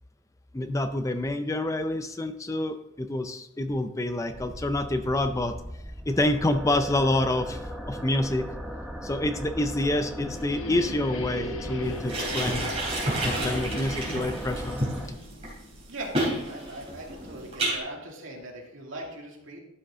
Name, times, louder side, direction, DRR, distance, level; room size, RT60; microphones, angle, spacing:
voice 1, 0.5-5.6 6.1-8.5 9.0-12.7 13.2-14.9, left 1 dB, 15° left, 8 dB, 0.4 m, -27 dB
sound 1, 4.3-15.1, equal, ahead, 1.0 m, -38 dB
sound 2, 9.6-16.3, equal, 80° left, 1.0 m, -39 dB
sound 3, 11.8-17.8, right 1 dB, 30° right, 3.2 m, -30 dB
voice 2, 15.9-19.6, right 1 dB, 75° right, -1 dB, 2.3 m, -40 dB
12.0 x 6.4 x 3.7 m, 0.80 s
head